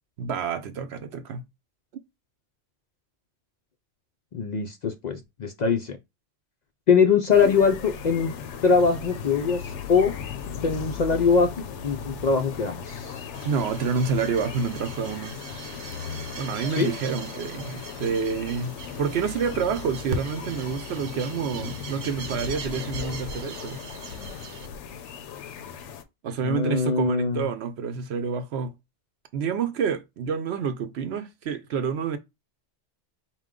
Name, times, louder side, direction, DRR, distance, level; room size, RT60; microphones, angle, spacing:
voice 1, 0.2-1.4 13.4-15.4 16.4-23.8 26.2-28.7 29.3-32.2, right 6 dB, 70° right, 0.8 m, -28 dB
voice 2, 4.3-6.0 6.9-8.3 8.6-10.1 10.6-13.2 16.7-16.9 26.4-27.5, left 5 dB, 60° left, 0.4 m, -22 dB
sound 1, 7.3-26.0, left 6 dB, 85° left, 0.9 m, -37 dB
sound 2, 13.3-24.7, right 4 dB, 85° right, 1.0 m, -40 dB
4.5 x 2.2 x 3.6 m
omnidirectional pair, 1.2 m